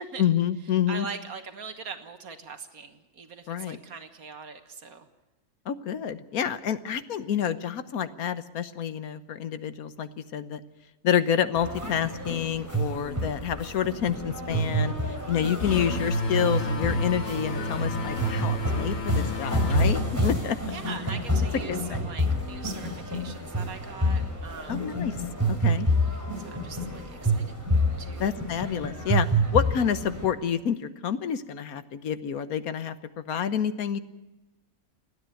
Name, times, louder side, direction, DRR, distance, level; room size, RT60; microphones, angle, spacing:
voice 1, 0.2-1.1 3.5-3.8 5.7-10.6 11.0-14.9 15.3-20.6 21.7-22.1 24.7-25.1 25.6-25.9 28.2-29.3 29.5-34.0, left 8 dB, 80° left, 12 dB, 1.5 m, -28 dB
voice 2, 0.9-5.1 20.7-24.9 26.4-27.6 28.0-28.4, right 5 dB, 80° right, 7 dB, 1.8 m, -41 dB
sound 1, 11.6-30.3, equal, 10° right, 4.2 m, -29 dB
sound 2, 15.6-21.0, left 1 dB, 60° left, 2.4 m, -30 dB
29.5 x 9.8 x 9.2 m, 1.0 s
omnidirectional pair, 1.5 m